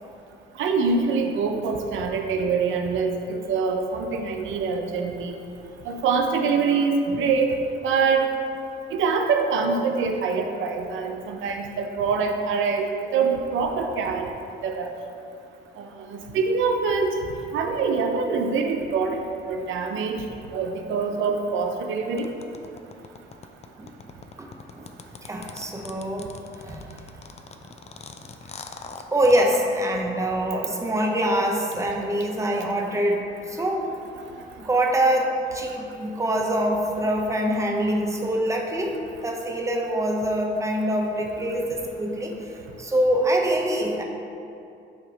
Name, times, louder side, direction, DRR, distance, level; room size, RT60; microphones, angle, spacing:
voice 1, 0.6-5.3 5.8-7.6 7.8-8.3 8.9-14.3 14.6-14.9 15.8-17.1 17.5-19.2 19.4-20.2 20.5-22.3, right 5 dB, 75° right, 3 dB, 0.6 m, -24 dB
sound 1, 22.2-29.6, left 5 dB, 35° left, 0.4 m, -41 dB
voice 2, 24.4-24.9 25.2-26.3 26.6-26.9 29.1-33.9 34.6-42.5 42.8-44.0, right 1 dB, 15° right, 1 dB, 0.8 m, -24 dB
7.9 x 2.8 x 5.0 m, 2.7 s
cardioid pair, 90°, 20 cm